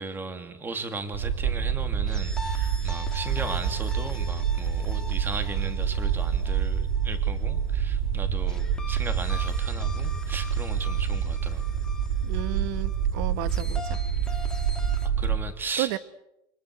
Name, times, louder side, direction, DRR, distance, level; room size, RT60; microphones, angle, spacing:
voice 1, 0.0-11.7 15.0-16.0, right 3 dB, 20° right, 2.9 m, -37 dB
sound 1, 1.1-15.4, right 7 dB, 90° right, 5.4 m, -27 dB
sound 2, 2.1-7.6 8.5-15.1, left 2 dB, 5° left, 2.6 m, -43 dB
voice 2, 12.2-14.0 15.8-16.0, right 17 dB, 75° right, 1.4 m, -32 dB
28.5 x 25.5 x 8.0 m
supercardioid pair, 145°, 12 cm